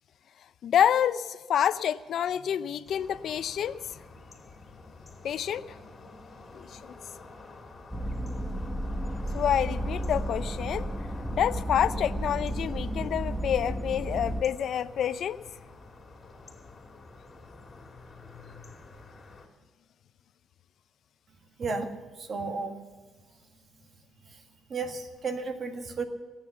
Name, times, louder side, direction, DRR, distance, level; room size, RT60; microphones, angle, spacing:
voice 1, 0.6-3.7 5.2-5.6 6.5-6.9 9.3-10.9 11.3-15.4, left 9 dB, 65° left, 15 dB, 0.5 m, -28 dB
sound 1, 2.9-19.5, left 3 dB, 30° left, 2.5 m, -49 dB
sound 2, 7.9-14.4, right 1 dB, ahead, 1.1 m, -33 dB
voice 2, 21.6-21.9 22.2-22.8 24.3-24.4 24.7-26.0, right 4 dB, 50° right, 6 dB, 1.7 m, -33 dB
17.5 x 9.0 x 7.0 m, 1.4 s
cardioid pair, 90°, 0 cm